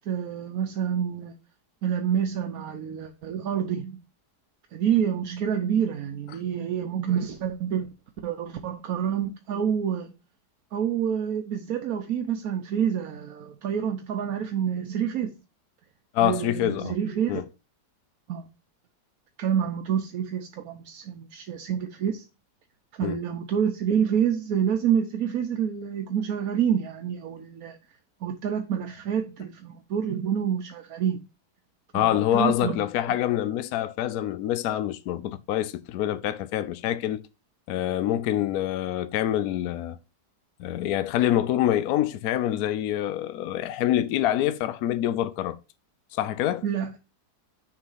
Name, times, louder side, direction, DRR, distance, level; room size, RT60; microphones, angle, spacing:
voice 1, 0.1-1.3 1.8-4.0 4.7-7.9 8.2-10.1 10.7-15.3 16.2-17.4 18.3-18.5 19.4-22.2 22.9-27.8 28.2-31.2 32.0-32.8 46.6-47.0, right 8 dB, 65° right, 1.2 m, -27 dB
voice 2, 16.1-16.9 17.3-17.4 23.0-23.2 31.9-37.2 37.7-40.0 40.6-45.6 46.1-46.6, left 12 dB, 70° left, 1.0 m, -26 dB
6.5 x 3.9 x 5.6 m
omnidirectional pair, 1.8 m